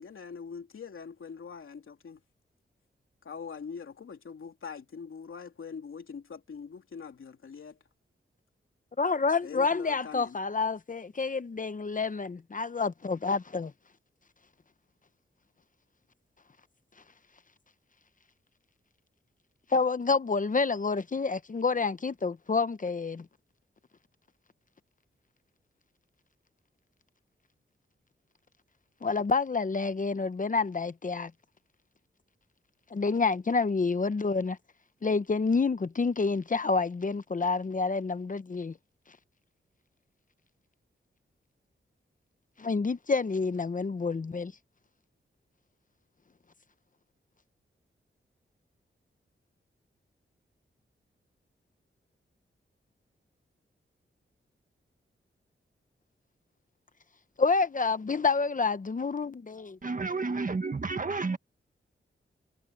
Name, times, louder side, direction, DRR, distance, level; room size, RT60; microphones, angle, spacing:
voice 1, 0.0-2.2 3.2-7.8 9.4-10.4, left 6 dB, 80° left, 3.4 m, -43 dB
voice 2, 9.0-13.7 19.7-23.3 29.0-31.3 32.9-34.6 35.0-38.7 42.6-44.5 57.4-59.8, left 4 dB, 40° left, 0.9 m, -28 dB
voice 3, 59.8-61.4, right 4 dB, 40° right, 1.5 m, -31 dB
wide cardioid pair, 90°, 21 cm